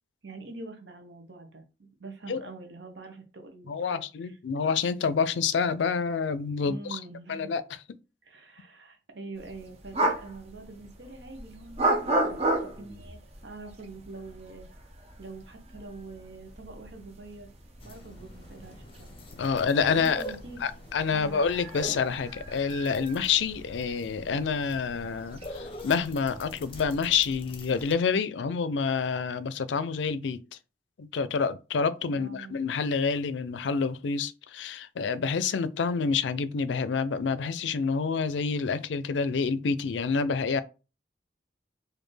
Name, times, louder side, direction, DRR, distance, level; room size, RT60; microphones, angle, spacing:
voice 1, 0.2-4.4 6.6-7.5 8.2-12.3 12.6-14.7 15.2-17.5 17.8-19.1 19.5-20.6 21.1-21.4 32.0-32.5, right 3 dB, 70° right, 0.8 m, -45 dB
voice 2, 3.7-7.0 7.3-7.6 19.4-20.2 20.6-30.4 31.0-40.6, left 5 dB, 80° left, 0.4 m, -28 dB
sound 1, 9.4-26.8, right 1 dB, 35° right, 0.8 m, -35 dB
sound 2, 17.8-27.9, equal, 30° left, 0.7 m, -45 dB
4.3 x 2.6 x 3.2 m
head